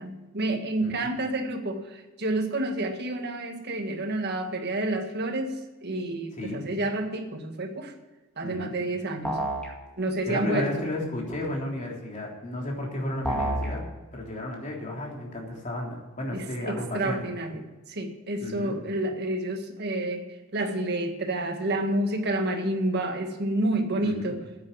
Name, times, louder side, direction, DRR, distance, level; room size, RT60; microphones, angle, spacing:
voice 1, 0.0-7.9 8.4-9.4 10.0-10.9 16.3-17.6 17.9-20.2 20.5-24.4, right 1 dB, 55° right, 5 dB, 1.7 m, -29 dB
voice 2, 6.3-6.6 8.4-8.7 10.2-13.8 14.1-17.2 18.4-18.8 24.0-24.4, left 1 dB, 40° left, -2 dB, 3.4 m, -33 dB
sound 1, 9.2-9.7 13.2-13.7, right 1 dB, 5° left, 2.1 m, -28 dB
9.6 x 8.5 x 9.7 m, 1.2 s
head